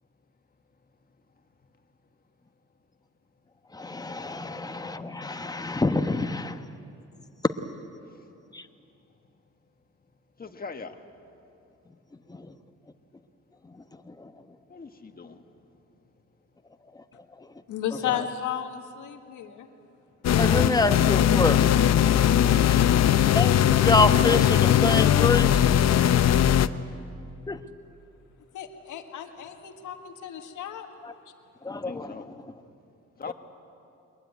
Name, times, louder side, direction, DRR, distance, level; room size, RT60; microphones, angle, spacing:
voice 1, 3.7-6.6 8.5-8.7 12.3-12.5 14.1-14.3 16.9-17.0 17.4-17.5 20.4-21.9 22.7-22.8 23.3-23.5 23.8-25.9 27.5-27.6 31.0-31.1 31.6-32.3 33.3-33.4, left 2 dB, 15° left, 8 dB, 1.1 m, -27 dB
voice 2, 10.4-11.0 14.7-15.4 31.8-32.3 33.2-33.3, left 4 dB, 30° left, 6 dB, 1.7 m, -40 dB
voice 3, 17.7-19.7 28.5-30.9 33.2-33.3, left 10 dB, 80° left, 5 dB, 1.9 m, -34 dB
sound 1, 20.2-26.7, left 10 dB, 60° left, 0.8 m, -20 dB
22.5 x 21.5 x 9.5 m, 2.7 s
cardioid pair, 90°, 30 cm